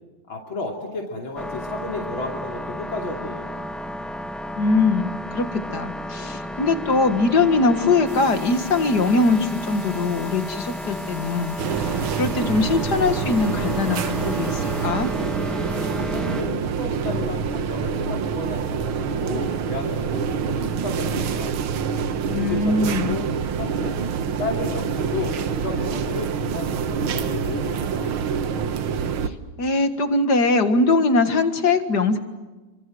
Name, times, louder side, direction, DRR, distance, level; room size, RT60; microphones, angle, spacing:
voice 1, 0.3-3.6 16.1-21.6 22.3-23.3 23.6-23.9 24.4-28.2, left 3 dB, 75° left, 0 dB, 3.8 m, -32 dB
sound 1, 1.4-16.4, left 1 dB, ahead, 1.1 m, -33 dB
voice 2, 4.6-15.1 22.3-23.2 29.2-32.2, left 3 dB, 55° left, 8 dB, 2.3 m, -22 dB
sound 2, 8.1-14.9, right 1 dB, 40° right, 7.0 m, -45 dB
sound 3, 11.6-29.3, right 6 dB, 85° right, 2.0 m, -26 dB
29.5 x 25.5 x 7.8 m, 1.2 s
omnidirectional pair, 2.2 m